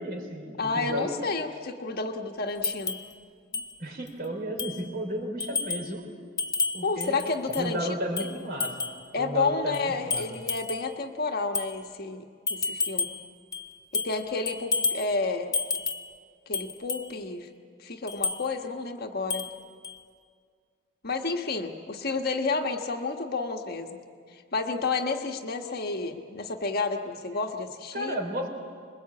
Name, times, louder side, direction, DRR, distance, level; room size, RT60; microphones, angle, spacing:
voice 1, 0.0-1.2 3.8-6.1 6.7-7.2 7.6-8.8 9.2-10.4 27.9-28.5, equal, 50° right, 3 dB, 4.1 m, -33 dB
voice 2, 0.6-3.0 3.5-3.6 6.8-7.9 9.1-12.2 12.5-13.1 13.9-15.6 16.5-17.5 17.8-19.5 21.0-24.0 24.3-28.2, left 3 dB, 50° left, 4 dB, 1.4 m, -30 dB
sound 1, 2.6-3.1 3.5-3.7 4.1-4.2 4.6-4.9 5.4-5.9 6.4-7.7 8.2-9.0 9.7-10.9 11.5-11.7 12.5-13.2 13.5-14.2 14.5-15.1 15.5-16.1 16.5-17.1 18.1-18.4 19.3-19.6 19.8-20.0, left 4 dB, 20° left, 0.9 m, -30 dB
25.5 x 21.5 x 8.6 m, 2.1 s
head